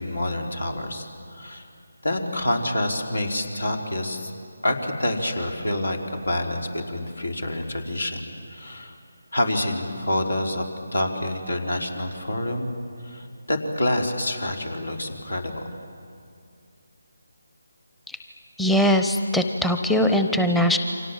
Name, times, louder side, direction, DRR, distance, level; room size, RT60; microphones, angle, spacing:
voice 1, 0.0-1.7 2.0-4.3 4.6-8.9 9.3-12.7 13.0-15.7, left 1 dB, 85° left, 3 dB, 3.8 m, -27 dB
voice 2, 18.6-20.8, left 1 dB, 5° left, 6 dB, 0.8 m, -21 dB
29.0 x 25.0 x 7.4 m, 2.4 s
figure-of-eight pair, 155°, 0 cm